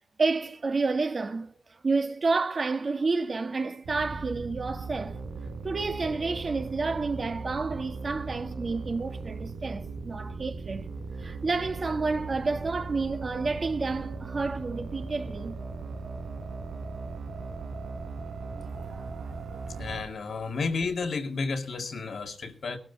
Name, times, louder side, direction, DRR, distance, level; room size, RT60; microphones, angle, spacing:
voice 1, 0.2-5.2 5.6-10.9 11.2-15.6 18.6-19.6, right 3 dB, 35° right, 1.8 m, -30 dB
sound 1, 3.8-20.1, right 4 dB, 90° right, 3.8 m, -38 dB
voice 2, 19.8-22.8, left 4 dB, 55° left, 2.1 m, -31 dB
20.0 x 12.5 x 4.0 m
wide cardioid pair, 155°, 0 cm